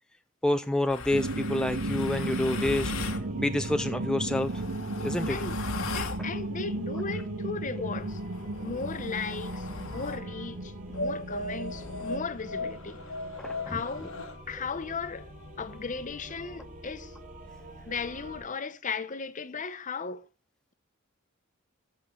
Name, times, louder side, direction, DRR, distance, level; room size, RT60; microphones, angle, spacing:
voice 1, 0.4-4.6 5.0-5.4 13.4-13.8, left 1 dB, 5° left, 0.4 m, -28 dB
sound 1, 0.9-3.2 4.2-6.3 7.9-10.3 10.9-14.4, left 3 dB, 70° left, 1.2 m, -38 dB
sound 2, 1.1-13.7, right 2 dB, 75° right, 1.1 m, -35 dB
sound 3, 2.4-18.4, equal, 40° right, 3.4 m, -47 dB
voice 2, 5.3-5.6 5.9-8.2 8.6-13.0 13.7-14.2 14.5-15.3 15.6-17.1 17.9-20.3, left 5 dB, 40° left, 0.9 m, -36 dB
15.0 x 6.5 x 3.7 m
head